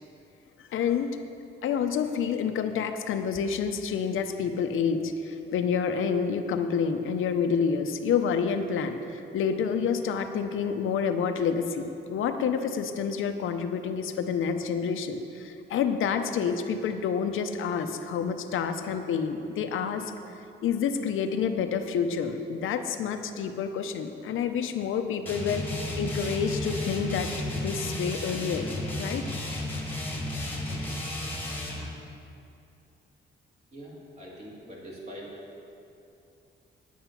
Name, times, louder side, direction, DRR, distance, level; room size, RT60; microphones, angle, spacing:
voice 1, 0.6-1.1 1.6-20.3 20.6-28.7 29.0-29.2, left 6 dB, 80° left, 7 dB, 0.7 m, -28 dB
sound 1, 25.3-31.9, left 1 dB, 10° left, 1.5 m, -33 dB
voice 2, 33.7-35.3, equal, 35° right, -4 dB, 2.2 m, -43 dB
9.2 x 8.7 x 5.8 m, 2.7 s
wide cardioid pair, 170°, 20 cm